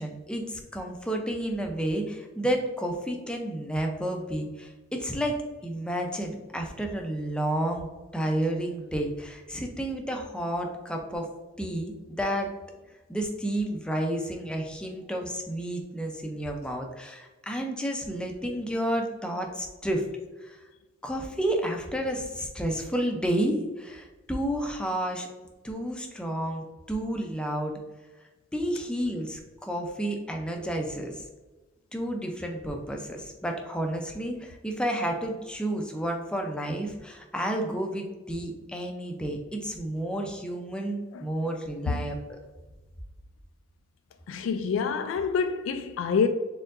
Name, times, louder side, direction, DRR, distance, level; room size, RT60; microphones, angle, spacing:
voice 1, 0.0-7.9 8.1-11.3 11.6-12.5 13.1-20.0 20.4-20.6 21.0-25.3 25.6-27.7 28.5-31.2 31.9-42.2, right 1 dB, 5° left, 0.5 m, -31 dB
voice 2, 44.3-46.3, left 5 dB, 80° left, 0.3 m, -27 dB
4.4 x 3.7 x 2.5 m
head